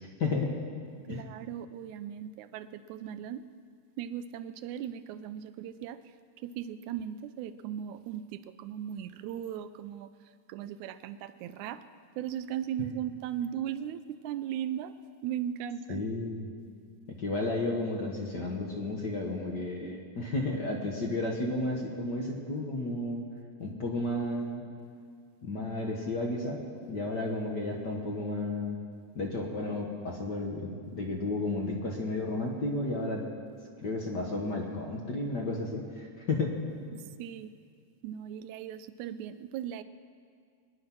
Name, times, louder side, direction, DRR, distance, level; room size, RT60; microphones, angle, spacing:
voice 1, 0.2-0.5 1.1-1.3 15.9-16.5 17.2-23.2 23.6-24.6 25.4-26.6 26.9-28.8 29.1-33.3 33.8-36.6, left 2 dB, 50° left, 0 dB, 1.3 m, -32 dB
voice 2, 1.1-3.4 4.0-11.8 12.2-14.9 15.2-16.0 36.9-37.5 38.0-39.8, right 10 dB, 80° right, 12 dB, 1.8 m, -38 dB
22.0 x 10.5 x 6.1 m, 2.1 s
omnidirectional pair, 3.8 m